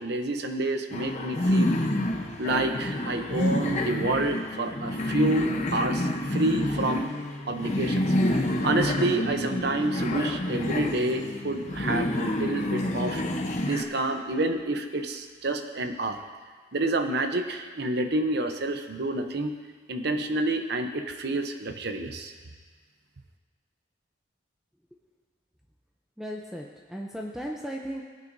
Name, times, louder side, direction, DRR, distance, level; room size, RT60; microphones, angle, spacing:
voice 1, 0.0-1.8 2.4-7.1 7.5-13.2 13.6-16.2 16.7-19.6 19.9-22.3, right 2 dB, 60° right, 6 dB, 0.8 m, -28 dB
sound 1, 0.9-13.8, left 1 dB, 40° left, 0.8 m, -28 dB
voice 2, 26.2-28.0, equal, 5° right, -1 dB, 0.6 m, -36 dB
17.5 x 8.8 x 2.7 m, 1.5 s
head